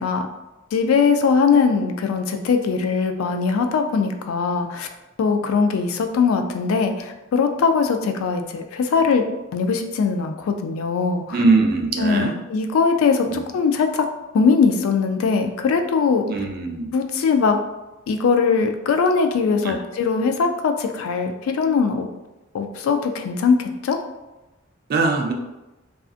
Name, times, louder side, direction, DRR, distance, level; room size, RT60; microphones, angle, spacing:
voice 1, 0.7-4.9 5.2-9.2 9.5-11.4 12.0-14.0 14.3-16.2 16.9-17.6 18.1-22.1 22.5-24.0, left 5 dB, 85° left, 6 dB, 0.3 m, -20 dB
voice 2, 11.3-12.3 13.3-13.4 16.3-16.9 19.6-19.8 24.9-25.3, right 3 dB, 45° right, 3 dB, 0.3 m, -21 dB
2.5 x 2.4 x 2.4 m, 1.0 s
head